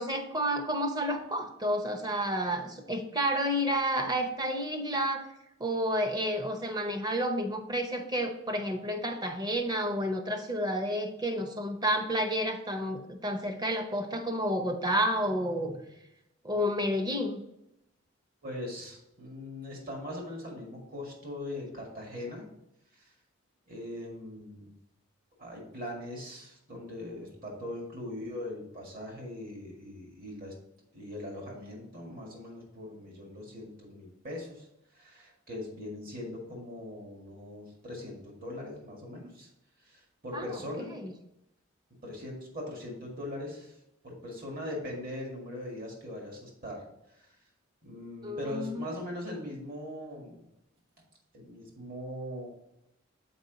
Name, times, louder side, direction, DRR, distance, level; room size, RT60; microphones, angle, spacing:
voice 1, 0.0-5.3 5.6-15.8 16.4-17.4 40.3-40.5 40.9-41.1 48.2-48.9, equal, 20° right, 5 dB, 0.8 m, -30 dB
voice 2, 18.4-22.5 22.9-23.1 23.7-24.7 25.4-30.5 30.9-34.7 34.9-39.5 39.8-40.9 42.0-43.8 44.0-47.4 47.8-50.4 51.3-52.5, left 1 dB, 45° right, -1 dB, 1.9 m, -41 dB
7.0 x 4.6 x 3.9 m, 0.84 s
head